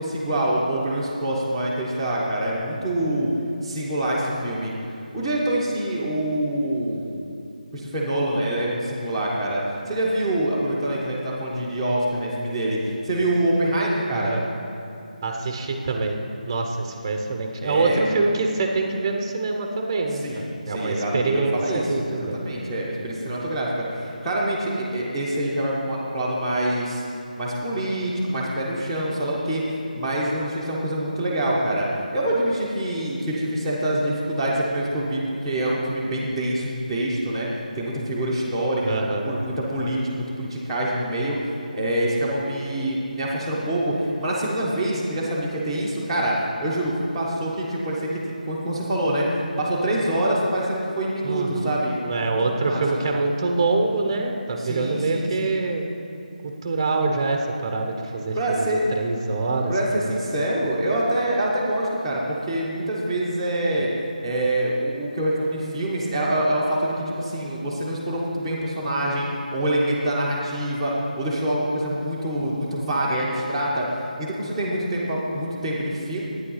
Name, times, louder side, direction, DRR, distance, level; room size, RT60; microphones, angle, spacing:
voice 1, 0.0-3.3 3.6-4.7 5.1-7.1 7.7-14.4 17.6-18.1 20.2-27.0 27.4-37.5 37.8-41.4 41.7-48.1 48.5-52.1 52.4-53.0 54.6-55.6 58.3-58.8 59.7-63.9 64.2-76.2, right 1 dB, 5° left, -12 dB, 1.2 m, -25 dB
voice 2, 14.1-14.5 15.2-16.2 16.5-22.4 38.8-39.4 51.2-51.8 52.0-55.8 56.4-59.7 60.0-60.2, right 3 dB, 25° right, 3 dB, 0.9 m, -25 dB
12.0 x 9.3 x 5.7 m, 2.5 s
figure-of-eight pair, 170°, 5 cm